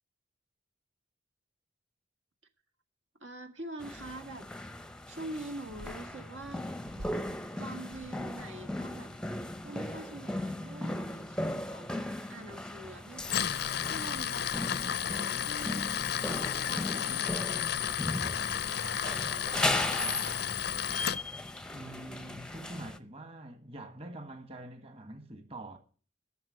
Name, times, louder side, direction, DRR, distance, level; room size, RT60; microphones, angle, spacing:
voice 1, 3.2-4.5 5.1-6.8 7.6-9.1 9.6-15.9 16.7-17.7 18.5-20.0, right 2 dB, 75° right, 1.8 m, -45 dB
sound 1, 3.8-23.0, left 1 dB, 5° left, 0.7 m, -37 dB
sound 2, 5.6-7.5 7.9-9.3 9.6-9.8, right 1 dB, 55° right, 1.1 m, -50 dB
Tools, 13.2-21.2, left 9 dB, 55° left, 0.5 m, -32 dB
voice 2, 21.7-25.8, right 1 dB, 30° right, 1.6 m, -45 dB
12.5 x 6.8 x 9.3 m
head